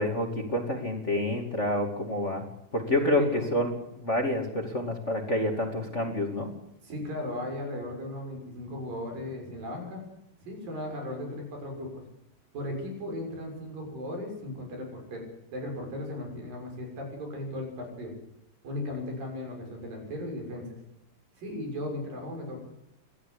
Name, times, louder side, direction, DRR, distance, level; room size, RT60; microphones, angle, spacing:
voice 1, 0.0-2.4 2.7-3.7 4.0-6.5, left 1 dB, 20° left, 3 dB, 2.5 m, -28 dB
voice 2, 2.9-3.5 6.8-10.0 10.4-12.0 12.5-15.2 15.5-18.1 18.6-20.7 21.4-22.6, left 1 dB, 90° right, 2 dB, 8.2 m, -36 dB
27.0 x 13.5 x 8.4 m, 0.84 s
omnidirectional pair, 3.9 m